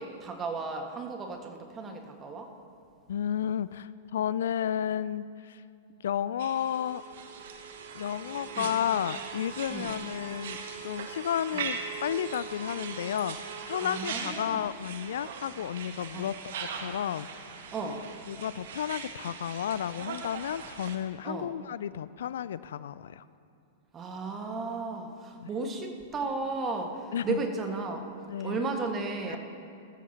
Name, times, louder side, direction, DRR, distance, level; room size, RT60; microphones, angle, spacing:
voice 1, 0.0-2.5 8.5-8.7 9.7-10.0 11.5-11.6 13.8-14.6 16.1-16.3 17.7-18.0 21.2-21.5 23.9-28.0 28.4-29.4, right 3 dB, 25° right, 3 dB, 1.7 m, -34 dB
voice 2, 3.1-5.6 6.0-7.0 8.0-13.4 13.7-17.3 18.3-23.2 25.4-25.5 27.1-27.4 28.3-28.6 29.3-29.4, left 9 dB, 70° left, 17 dB, 0.3 m, -32 dB
sound 1, 6.4-21.0, right 6 dB, 65° right, 1.2 m, -40 dB
20.0 x 14.0 x 2.9 m, 2.5 s
hypercardioid pair, 105°, 0 cm